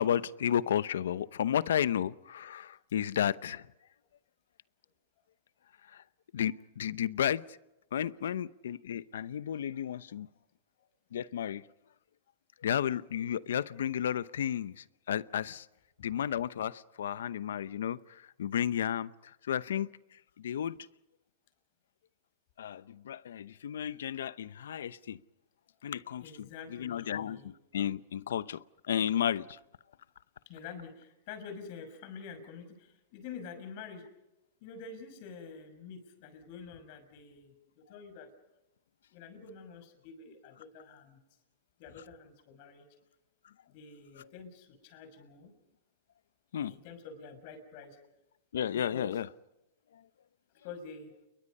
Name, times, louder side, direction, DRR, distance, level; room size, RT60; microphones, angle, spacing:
voice 1, 0.0-3.7 5.9-6.0 6.3-7.4 7.9-10.3 11.1-11.6 12.6-15.7 16.0-19.1 19.5-19.9 20.4-20.8 22.6-25.2 25.8-29.6 44.2-44.3 46.5-46.7 48.5-49.3 49.9-50.0, left 9 dB, 90° left, 0.8 m, -33 dB
voice 2, 26.2-27.5 30.5-34.0 34.6-38.3 39.1-41.2 41.8-42.9 43.7-45.5 46.7-48.0 48.9-49.1 50.6-51.1, left 5 dB, 50° left, 6.2 m, -47 dB
29.5 x 22.5 x 5.5 m
supercardioid pair, 140°, 0 cm